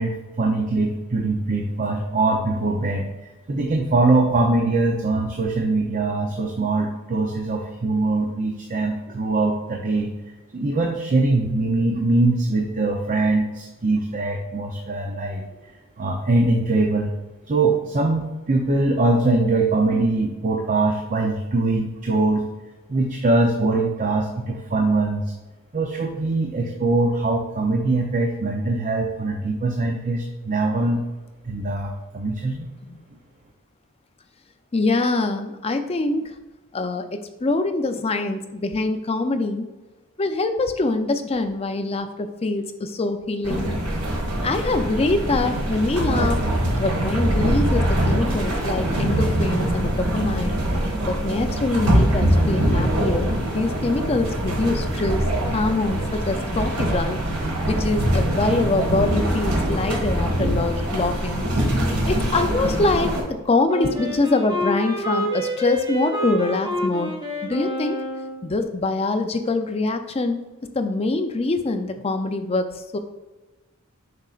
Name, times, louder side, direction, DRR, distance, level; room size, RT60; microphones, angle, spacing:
voice 1, 0.0-3.1 3.5-10.1 10.5-15.5 16.0-17.1 17.5-22.4 22.9-25.3 25.7-31.0 31.4-32.7, right 2 dB, 35° right, 2 dB, 0.6 m, -22 dB
voice 2, 34.7-36.3 36.7-39.7 40.2-43.7 44.4-46.4 46.7-50.6 51.0-55.2 55.5-57.2 57.7-61.5 62.1-67.1 67.4-68.0 68.4-70.4 70.7-73.0, left 2 dB, 25° left, 7 dB, 0.4 m, -24 dB
sound 1, 43.4-63.2, right 1 dB, 80° right, 1.7 m, -23 dB
Wind instrument woodwind instrument, 63.7-68.4, left 1 dB, 20° right, 1.3 m, -27 dB
7.5 x 5.5 x 2.4 m, 1.2 s
head